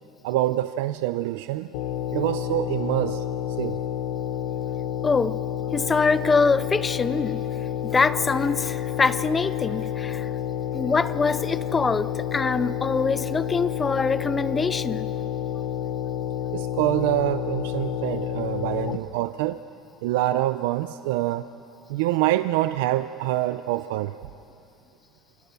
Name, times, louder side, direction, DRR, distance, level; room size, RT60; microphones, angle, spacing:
voice 1, 0.2-1.7 2.1-3.2 3.6-3.7 16.5-19.6 20.0-21.4 21.9-24.1, right 15 dB, 90° right, 0.6 m, -25 dB
sound 1, 1.7-19.0, left 9 dB, 60° left, 1.0 m, -29 dB
voice 2, 5.0-5.4 5.7-7.5 7.8-10.3 10.7-15.1, left 4 dB, 15° left, 0.5 m, -24 dB
29.0 x 26.0 x 6.9 m
cardioid pair, 180°, 0 cm